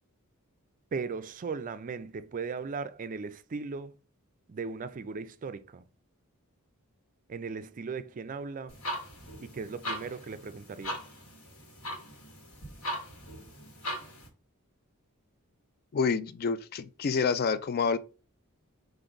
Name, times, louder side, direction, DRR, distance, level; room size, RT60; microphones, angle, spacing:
voice 1, 0.9-3.9 4.5-5.8 7.3-8.8 9.4-11.0, right 5 dB, 40° right, 0.4 m, -37 dB
sound 1, 8.7-14.3, equal, 75° left, 1.5 m, -40 dB
voice 2, 15.9-18.0, left 5 dB, 45° left, 0.3 m, -28 dB
4.9 x 2.5 x 3.8 m
head